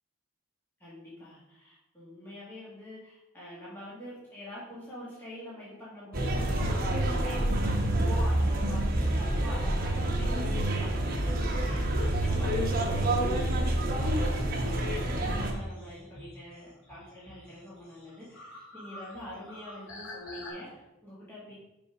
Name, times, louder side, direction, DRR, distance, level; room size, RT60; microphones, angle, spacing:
voice 1, 0.8-21.5, equal, 10° left, -10 dB, 1.9 m, -45 dB
sound 1, 6.1-15.5, right 1 dB, 45° right, 1.0 m, -27 dB
sound 2, 15.3-20.5, left 2 dB, 75° left, 2.7 m, -48 dB
5.4 x 5.4 x 4.9 m, 0.92 s
head